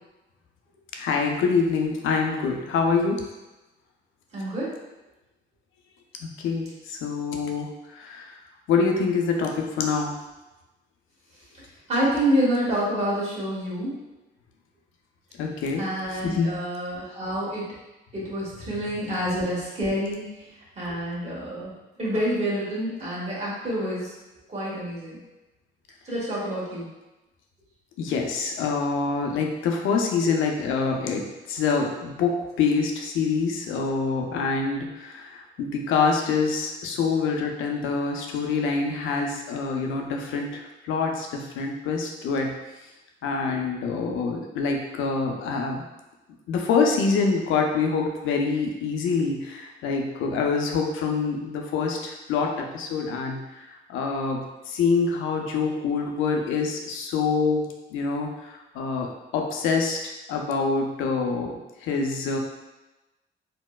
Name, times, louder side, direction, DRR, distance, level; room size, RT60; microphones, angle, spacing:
voice 1, 0.9-3.3 6.2-8.4 8.7-10.1 15.4-16.6 28.0-42.5 43.2-45.8 46.5-62.4, left 4 dB, 85° left, 2 dB, 0.5 m, -26 dB
voice 2, 4.3-4.7 11.9-13.9 15.8-17.6 18.1-20.2 20.8-21.7 22.0-24.1 24.5-25.2 26.1-26.9, equal, 35° right, -7 dB, 1.4 m, -27 dB
4.2 x 2.1 x 2.3 m, 1.0 s
cardioid pair, 90°, 20 cm